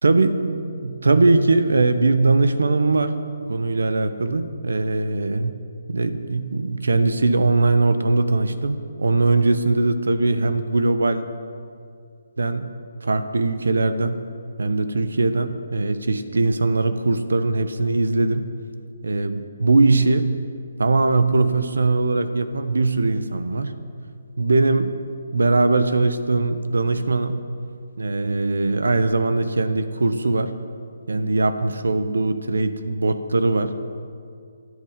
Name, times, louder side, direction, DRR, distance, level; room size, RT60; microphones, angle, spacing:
voice 1, 0.0-3.2 3.5-5.5 5.9-11.3 12.4-12.7 13.0-14.2 14.6-18.5 19.0-20.3 20.8-23.8 24.4-24.9 25.3-27.4 28.0-30.6 31.1-33.9, right 3 dB, 90° right, 12 dB, 1.0 m, -20 dB
24.0 x 8.2 x 5.1 m, 2.4 s
hypercardioid pair, 150°, 0 cm